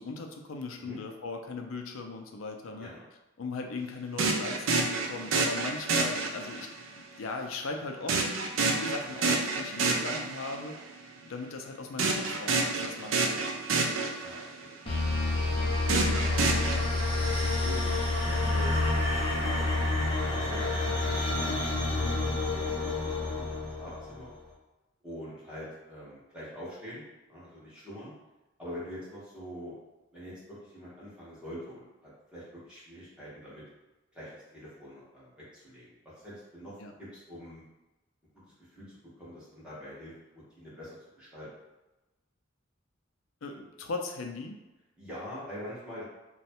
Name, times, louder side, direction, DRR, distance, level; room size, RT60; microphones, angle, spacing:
voice 1, 0.0-2.9 3.4-6.7 7.2-8.2 8.7-10.8 11.2-13.5 15.5-15.8 22.3-22.5 36.8-36.9 43.4-44.6, left 3 dB, 85° left, 3 dB, 0.5 m, -38 dB
sound 1, 4.2-6.8 8.1-10.7 12.0-14.7 15.9-16.8, right 3 dB, 75° right, 0.5 m, -28 dB
voice 2, 14.2-14.7 15.3-15.5 16.1-16.9 17.6-18.0 18.3-19.6 20.3-21.6 21.9-24.3 25.0-27.0 27.3-28.1 28.6-29.7 30.1-33.6 34.1-36.7 37.0-37.6 38.7-40.1 40.5-41.5 45.0-46.0, equal, 5° right, -9 dB, 1.3 m, -44 dB
sound 2, 14.9-24.3, left 2 dB, 25° left, 0.7 m, -28 dB
3.1 x 2.3 x 4.3 m, 1.1 s
head